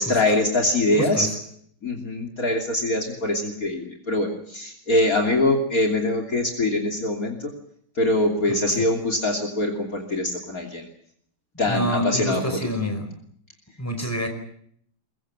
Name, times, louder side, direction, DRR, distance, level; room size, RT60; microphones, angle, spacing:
voice 1, 0.0-1.3 1.8-7.5 7.9-10.9 11.6-12.6, left 1 dB, 45° left, 2 dB, 3.4 m, -23 dB
voice 2, 0.9-1.3 8.7-8.8 11.7-13.1 13.8-14.3, equal, 5° left, 5 dB, 4.9 m, -27 dB
23.0 x 22.5 x 7.5 m, 0.65 s
omnidirectional pair, 2.2 m